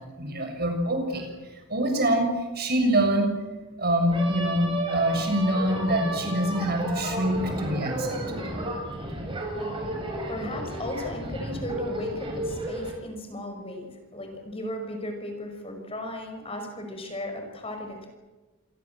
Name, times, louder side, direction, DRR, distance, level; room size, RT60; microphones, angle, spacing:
voice 1, 0.2-1.3 1.7-2.3 2.5-3.3 3.8-8.4, right 1 dB, 50° right, 4 dB, 7.1 m, -25 dB
Hunt Horn, 4.1-12.9, right 1 dB, 25° right, 7.7 m, -32 dB
voice 2, 9.4-9.8 10.3-18.1, left 1 dB, 30° left, 4 dB, 5.7 m, -36 dB
28.0 x 23.0 x 7.6 m, 1.2 s
head